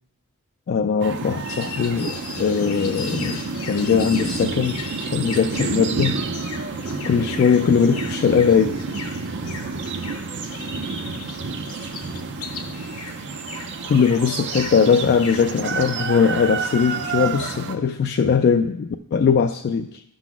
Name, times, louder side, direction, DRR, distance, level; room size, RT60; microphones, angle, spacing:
voice 1, 0.7-6.2 7.0-8.8 13.5-13.6 13.8-20.0, left 6 dB, 50° left, 6 dB, 0.3 m, -20 dB
sound 1, 1.0-17.7, right 4 dB, 55° right, 0.5 m, -29 dB
sound 2, 1.4-15.7, left 5 dB, 70° left, 1.0 m, -38 dB
11.5 x 3.9 x 6.0 m, 0.81 s
head